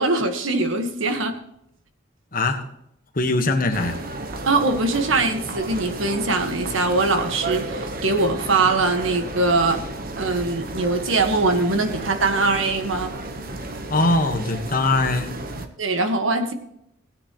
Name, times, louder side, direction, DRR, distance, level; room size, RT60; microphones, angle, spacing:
voice 1, 0.0-1.3 4.5-9.8 10.2-13.1 15.8-16.5, right 3 dB, 80° right, 6 dB, 1.5 m, -22 dB
voice 2, 2.3-2.7 3.1-4.0 13.9-15.5, left 2 dB, 45° left, 5 dB, 1.4 m, -22 dB
sound 1, 3.7-15.7, right 2 dB, 45° right, 1.1 m, -33 dB
17.0 x 9.6 x 3.1 m, 0.75 s
head